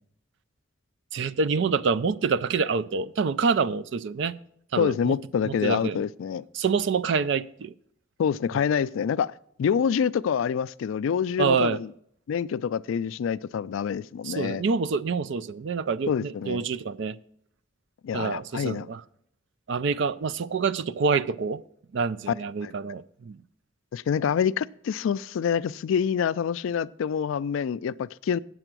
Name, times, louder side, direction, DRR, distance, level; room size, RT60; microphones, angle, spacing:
voice 1, 1.1-4.3 4.7-5.1 5.4-6.0 6.5-7.7 11.4-11.8 14.2-17.2 18.1-19.0 19.7-21.6 21.9-23.4, right 5 dB, 60° right, 0.4 m, -26 dB
voice 2, 4.8-6.4 8.2-9.3 9.6-11.9 12.3-14.6 16.1-16.6 18.0-18.9 22.3-22.4 22.6-22.7 23.9-28.4, left 7 dB, 70° left, 0.3 m, -26 dB
9.0 x 7.6 x 6.0 m
head